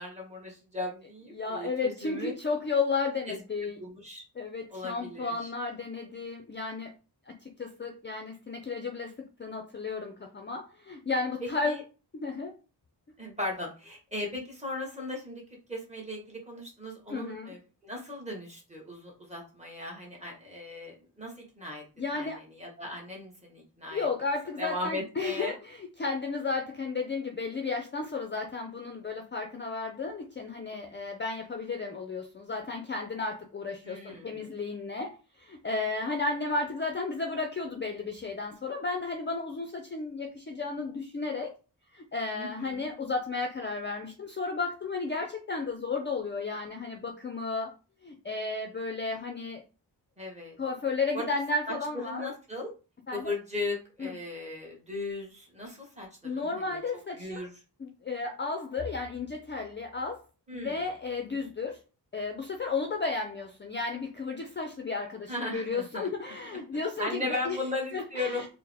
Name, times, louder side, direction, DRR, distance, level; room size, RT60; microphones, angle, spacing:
voice 1, 0.0-2.3 3.3-3.4 3.6-4.2 4.7-5.5 11.4-11.8 13.2-15.4 15.7-21.9 22.1-24.1 24.6-25.5 33.8-34.5 42.3-42.9 50.2-50.6 51.1-51.3 51.7-52.7 53.1-56.8 57.2-57.5 60.5-60.8 65.3-66.1 67.0-68.4, left 2 dB, 15° right, -1 dB, 1.2 m, -37 dB
voice 2, 1.3-3.8 4.4-6.9 7.3-9.1 9.4-11.7 12.1-12.5 17.1-17.5 22.0-22.4 23.9-35.1 35.4-41.5 41.9-47.7 48.0-49.6 50.6-52.3 53.1-53.3 54.0-54.1 56.2-57.5 57.8-60.2 60.5-61.8 62.1-67.6 67.9-68.5, left 4 dB, 30° left, 3 dB, 0.4 m, -33 dB
4.5 x 2.0 x 3.4 m, 0.34 s
wide cardioid pair, 165°, 40 cm